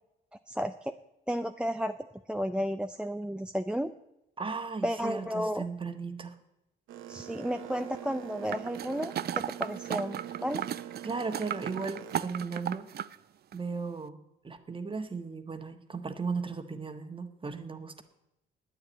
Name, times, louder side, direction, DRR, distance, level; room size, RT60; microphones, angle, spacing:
voice 1, 0.5-1.0 1.3-2.0 2.3-3.9 4.8-5.6 7.1-10.6, equal, 5° right, 9 dB, 0.5 m, -32 dB
voice 2, 4.4-6.3 11.0-12.9 13.5-18.0, right 4 dB, 25° right, 8 dB, 1.4 m, -36 dB
Boat Water vehicle, 6.9-12.2, right 11 dB, 85° right, 1.0 m, -44 dB
sound 1, 8.5-13.1 13.5-13.6, right 10 dB, 55° right, 0.5 m, -36 dB
10.0 x 9.3 x 8.8 m, 0.88 s
cardioid pair, 90°, 20 cm